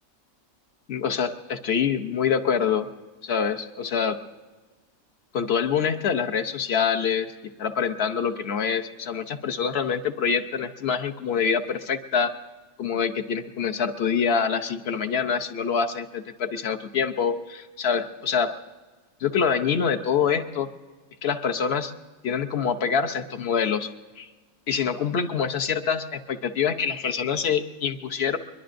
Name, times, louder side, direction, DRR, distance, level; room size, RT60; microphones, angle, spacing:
voice 1, 0.9-2.9 3.2-4.2 5.3-7.3 7.6-12.4 12.8-18.5 19.2-20.7 21.2-21.9 22.2-23.9 24.2-24.3 24.7-28.4, left 6 dB, 55° left, 7 dB, 0.9 m, -25 dB
23.0 x 22.0 x 2.6 m, 1.3 s
omnidirectional pair, 1.4 m